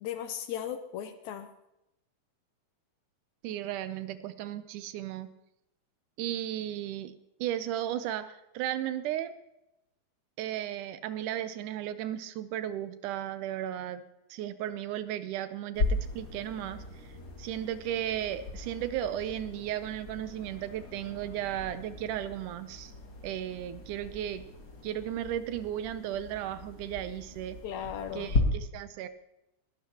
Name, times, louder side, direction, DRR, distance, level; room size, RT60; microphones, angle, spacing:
voice 1, 0.0-1.5 27.6-28.4, left 9 dB, 75° left, 9 dB, 1.9 m, -37 dB
voice 2, 3.4-5.3 6.2-7.1 7.4-9.4 10.4-14.0 14.3-17.1 17.4-22.9 23.2-24.4 24.8-27.6 28.1-29.1, right 11 dB, 80° right, 12 dB, 2.1 m, -35 dB
sound 1, 15.7-28.4, left 2 dB, 40° left, 2.3 m, -37 dB
20.5 x 12.0 x 2.9 m, 0.87 s
omnidirectional pair, 3.7 m